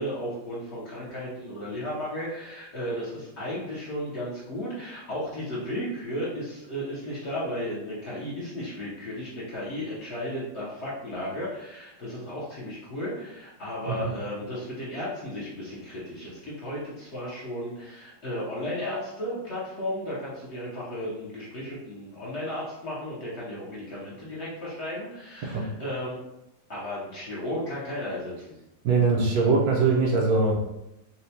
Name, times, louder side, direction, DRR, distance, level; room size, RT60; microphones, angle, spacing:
voice 1, 0.0-26.2 26.7-28.6, equal, 50° left, -6 dB, 0.9 m, -34 dB
voice 2, 28.8-30.6, right 4 dB, 70° right, -2 dB, 1.0 m, -22 dB
4.3 x 2.2 x 2.7 m, 0.88 s
omnidirectional pair, 1.8 m